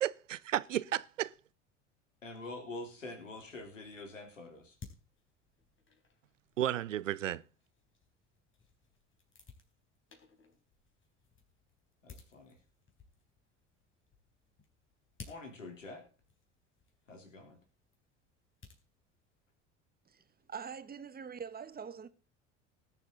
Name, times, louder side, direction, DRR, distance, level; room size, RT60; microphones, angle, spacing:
voice 1, 0.0-1.3 6.6-7.4, right 12 dB, 85° right, 0.6 m, -33 dB
voice 2, 2.2-4.8 12.0-12.6 15.3-16.0 17.1-17.6, left 2 dB, 85° left, 3.3 m, -46 dB
sound 1, 3.2-19.6, left 5 dB, 35° left, 3.9 m, -59 dB
voice 3, 20.1-22.1, right 6 dB, 25° right, 1.2 m, -44 dB
19.0 x 7.7 x 3.9 m
figure-of-eight pair, 65°, 37 cm